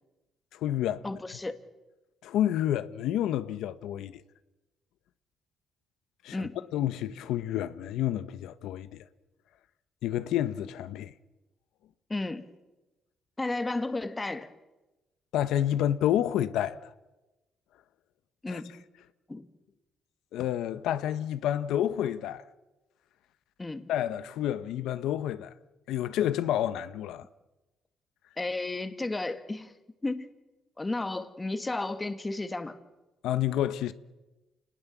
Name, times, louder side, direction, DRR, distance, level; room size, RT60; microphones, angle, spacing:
voice 1, 0.5-1.1 2.2-4.2 6.2-9.0 10.0-11.1 15.3-16.9 18.5-18.6 20.3-22.4 23.9-25.5 25.9-27.2 33.2-33.9, left 11 dB, 85° left, 1.0 m, -29 dB
voice 2, 1.0-1.6 6.3-6.6 12.1-12.5 13.4-14.5 18.4-18.8 19.3-19.5 23.6-23.9 28.4-29.7 30.0-30.3 30.8-32.8, left 2 dB, 15° left, 1.8 m, -33 dB
29.5 x 19.5 x 7.3 m
cardioid pair, 120°, 0 cm